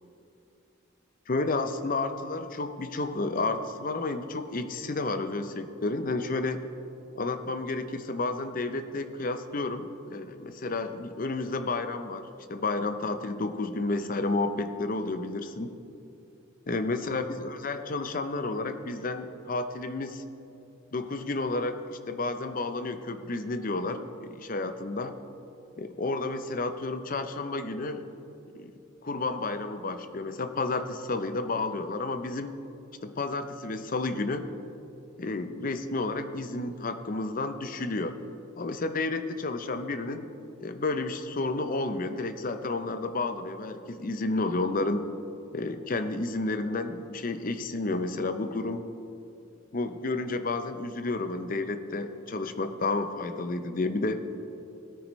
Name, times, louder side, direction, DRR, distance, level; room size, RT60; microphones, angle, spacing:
voice 1, 1.3-6.6 7.2-15.7 16.7-20.2 20.9-25.1 25.8-28.1 28.6-28.7 29.0-32.5 33.0-34.5 35.2-38.2 38.6-40.3 40.6-45.1 45.5-48.8 49.7-54.2, left 2 dB, 45° left, 9 dB, 0.6 m, -31 dB
17.0 x 9.2 x 3.1 m, 2.7 s
head